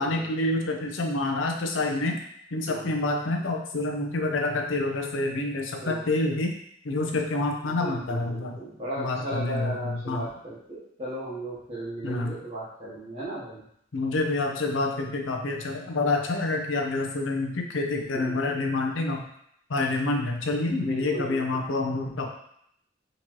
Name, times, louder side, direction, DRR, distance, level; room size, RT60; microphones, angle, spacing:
voice 1, 0.0-2.2 2.5-6.5 6.8-8.6 9.0-10.2 12.0-12.3 13.9-19.2 19.7-22.3, left 2 dB, 85° left, 2 dB, 0.6 m, -27 dB
voice 2, 2.7-3.1 5.8-6.3 7.6-13.6 18.1-18.6 20.8-21.4, right 1 dB, 35° right, -9 dB, 0.9 m, -36 dB
3.8 x 3.0 x 2.9 m, 0.71 s
head